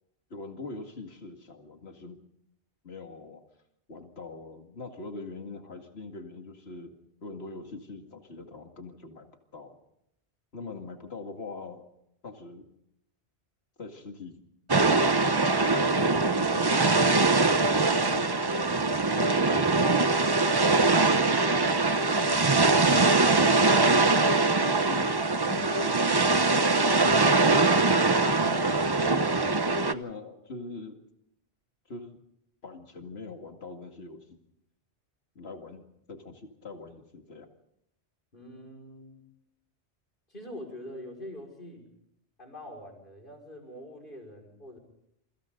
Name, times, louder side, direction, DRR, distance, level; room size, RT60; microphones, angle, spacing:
voice 1, 0.3-2.2 2.8-3.4 3.9-6.9 7.2-9.3 9.5-9.8 10.5-11.9 12.2-12.7 13.8-14.3 15.0-21.3 21.7-23.5 23.9-25.1 25.5-26.5 27.7-31.0 31.9-32.2 32.6-34.4 35.4-37.5, left 3 dB, 70° left, 4 dB, 2.5 m, -43 dB
sound 1, 14.7-29.9, right 3 dB, 25° right, 0.8 m, -22 dB
voice 2, 38.3-39.2 40.3-41.9 42.4-44.8, left 1 dB, 50° left, 1 dB, 5.8 m, -44 dB
28.0 x 24.5 x 3.9 m, 0.77 s
omnidirectional pair, 1.1 m